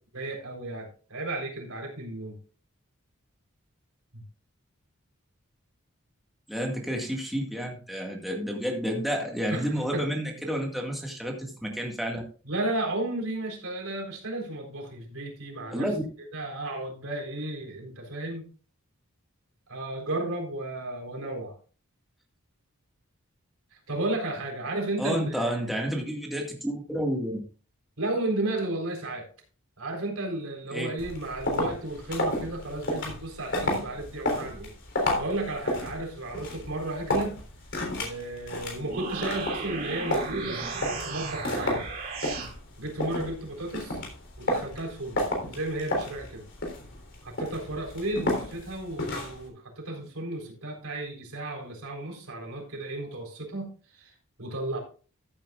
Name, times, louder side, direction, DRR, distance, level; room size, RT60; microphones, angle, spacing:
voice 1, 0.1-2.4 4.1-4.2 9.5-10.1 12.4-15.9 16.2-18.4 19.7-21.5 23.9-25.7 28.0-29.3 29.8-37.4 38.0-41.8 42.4-42.5 42.8-44.0 44.4-46.4 47.2-54.1 54.4-54.8, right 2 dB, 90° right, 0 dB, 4.1 m, -33 dB
voice 2, 6.5-12.2 15.7-16.0 25.0-27.4 30.7-30.9, equal, ahead, 0 dB, 1.9 m, -30 dB
sound 1, 31.0-49.5, left 1 dB, 60° left, 3.6 m, -32 dB
sound 2, 38.7-42.5, right 4 dB, 45° right, 2.4 m, -35 dB
14.5 x 9.1 x 2.5 m, 0.37 s
head